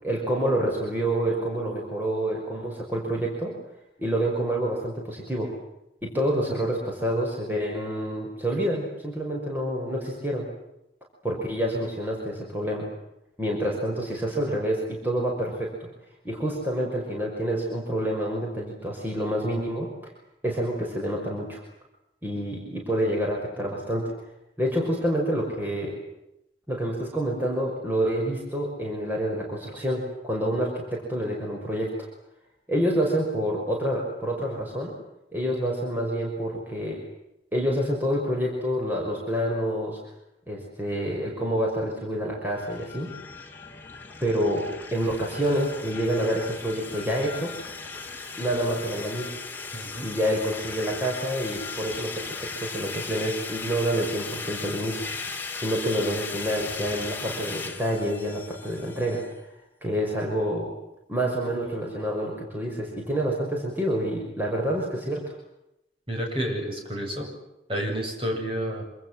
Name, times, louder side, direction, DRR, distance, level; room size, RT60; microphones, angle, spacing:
voice 1, 0.0-3.6 4.0-5.5 6.0-10.5 11.2-12.9 13.4-15.9 16.2-20.1 20.4-21.6 22.2-24.1 24.6-26.0 26.7-32.1 32.7-34.9 35.3-37.0 37.5-40.0 40.5-43.1 44.2-47.5 48.4-49.3 50.0-55.1 55.6-59.3 59.8-60.7 61.1-65.3, equal, 10° right, -2 dB, 5.8 m, -28 dB
sound 1, 42.6-59.3, left 4 dB, 10° left, 2.6 m, -37 dB
voice 2, 49.7-50.1 66.1-67.3 67.7-68.8, equal, 30° right, 1 dB, 7.9 m, -30 dB
27.0 x 26.5 x 7.7 m, 0.86 s
head